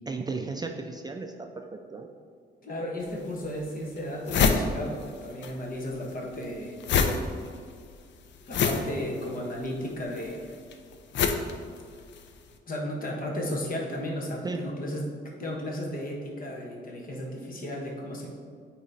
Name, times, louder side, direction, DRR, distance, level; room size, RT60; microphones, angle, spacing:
voice 1, 0.1-2.1 14.4-14.6, right 3 dB, 20° right, 4 dB, 0.4 m, -35 dB
voice 2, 2.6-6.8 8.4-10.4 12.7-18.3, left 1 dB, 45° left, -1 dB, 1.4 m, -34 dB
sound 1, 3.0-3.1 3.7-3.8 4.0-5.5 5.8-12.3, left 5 dB, 65° left, 0.6 m, -27 dB
8.6 x 3.1 x 4.1 m, 2.1 s
cardioid pair, 90°, 20 cm